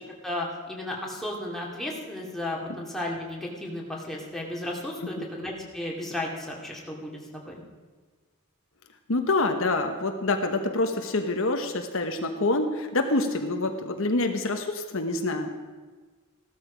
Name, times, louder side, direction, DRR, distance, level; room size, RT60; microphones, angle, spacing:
voice 1, 0.2-7.6, left 1 dB, ahead, -3 dB, 2.3 m, -34 dB
voice 2, 9.1-15.5, left 2 dB, 65° left, 5 dB, 1.1 m, -26 dB
15.5 x 13.0 x 5.1 m, 1.4 s
head